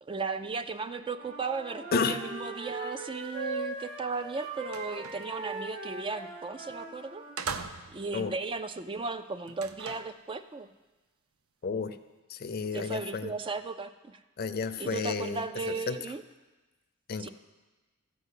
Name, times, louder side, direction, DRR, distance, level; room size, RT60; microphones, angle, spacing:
voice 1, 0.0-7.3 7.9-10.7 12.7-14.2 14.8-16.2 17.2-17.3, right 4 dB, 25° right, 10 dB, 0.3 m, -36 dB
Wind instrument woodwind instrument, 1.0-7.3, right 3 dB, 60° right, 3.5 m, -39 dB
sound 1, 4.1-4.2 4.6-5.3 6.6-6.8 7.4-8.1 9.5-10.2, right 5 dB, 90° right, 0.6 m, -40 dB
voice 2, 11.6-11.9 12.3-13.3 14.4-15.4 15.9-16.0 17.1-17.3, left 5 dB, 45° left, 10 dB, 0.5 m, -31 dB
13.0 x 5.1 x 8.2 m, 1.2 s
head